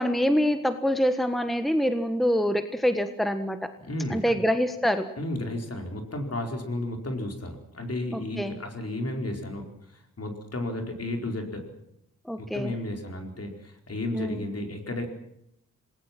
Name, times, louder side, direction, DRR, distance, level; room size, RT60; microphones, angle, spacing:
voice 1, 0.0-3.7 4.1-5.1 8.1-8.5 12.2-12.7 14.1-14.4, equal, ahead, 8 dB, 1.4 m, -25 dB
voice 2, 3.8-4.4 5.2-11.8 12.4-15.1, left 1 dB, 50° left, 3 dB, 4.7 m, -33 dB
27.5 x 20.0 x 6.1 m, 0.78 s
wide cardioid pair, 85°, 32 cm